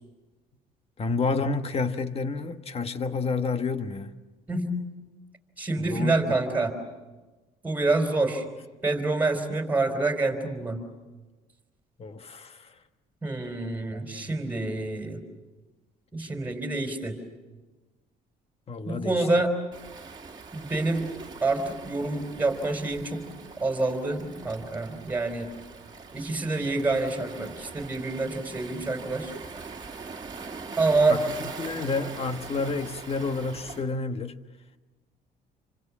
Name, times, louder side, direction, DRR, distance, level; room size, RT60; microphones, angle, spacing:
voice 1, 1.0-4.1 5.8-6.4 12.0-12.7 13.9-14.3 18.7-19.3 31.1-31.2 31.6-34.4, left 4 dB, 35° left, 1.5 m, -30 dB
voice 2, 5.6-6.7 7.6-8.4 8.8-10.8 13.2-15.2 16.1-17.2 18.8-19.6 20.5-21.1 21.4-23.2 23.6-25.5 26.1-29.3 30.8-31.2, right 2 dB, 10° right, 4.7 m, -27 dB
Waves surf, 19.7-33.9, right 4 dB, 25° right, 2.5 m, -42 dB
28.0 x 25.5 x 7.4 m
cardioid pair, 110°, 17 cm